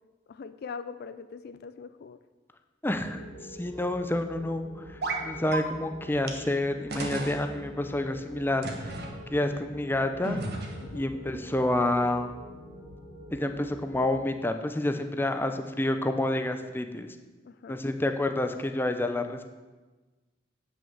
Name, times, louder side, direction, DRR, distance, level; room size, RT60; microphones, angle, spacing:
voice 1, 0.3-2.2 10.8-11.1 17.4-17.8, left 5 dB, 55° left, 12 dB, 0.4 m, -42 dB
voice 2, 2.8-3.2 3.6-8.7 9.3-10.4 10.9-12.3 13.3-17.1 17.7-19.5, left 1 dB, 10° left, 7 dB, 0.6 m, -29 dB
sound 1, 2.9-14.2, equal, 25° right, 2.7 m, -46 dB
sound 2, 5.0-5.2 5.5-5.6 6.3-6.4 6.9-7.4 8.6-9.1 10.2-11.0, right 2 dB, 60° right, 1.4 m, -33 dB
8.5 x 6.2 x 7.1 m, 1.3 s
head